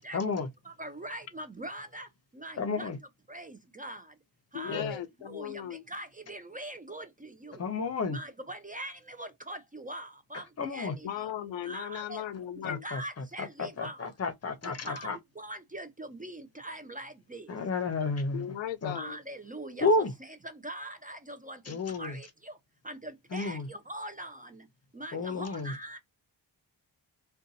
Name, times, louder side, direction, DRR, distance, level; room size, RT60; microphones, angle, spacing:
voice 1, 0.0-0.5 2.6-3.0 4.7-4.9 7.6-8.2 10.6-10.9 12.6-15.2 17.5-18.5 18.8-19.0 19.8-20.1 21.7-22.2 23.3-23.7 25.1-25.7, left 3 dB, 35° left, 0.6 m, -31 dB
voice 2, 0.6-2.9 3.3-4.2 4.5-7.7 8.1-11.3 11.6-12.2 12.6-14.1 14.6-17.5 18.9-22.6 22.8-24.7 24.9-26.0, right 1 dB, 20° right, 0.4 m, -43 dB
voice 3, 4.5-5.8 11.0-12.9 18.3-19.2, left 11 dB, 85° left, 0.6 m, -37 dB
2.6 x 2.3 x 3.9 m
wide cardioid pair, 140°, 44 cm